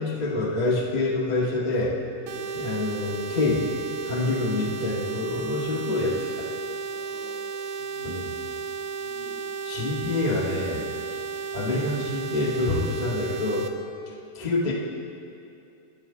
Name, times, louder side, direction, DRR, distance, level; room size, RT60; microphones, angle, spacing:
voice 1, 0.0-2.0 2.5-3.8 4.0-6.5 8.0-8.3 9.6-11.2 11.5-13.7 14.1-14.7, left 2 dB, 30° left, -2 dB, 0.7 m, -27 dB
voice 2, 2.1-2.7 4.1-4.6 6.9-9.5 13.8-14.0, left 2 dB, 70° left, -9 dB, 5.4 m, -50 dB
sound 1, 2.3-13.7, right 5 dB, 90° right, 1.2 m, -34 dB
29.0 x 10.0 x 3.8 m, 2.6 s
omnidirectional pair, 3.8 m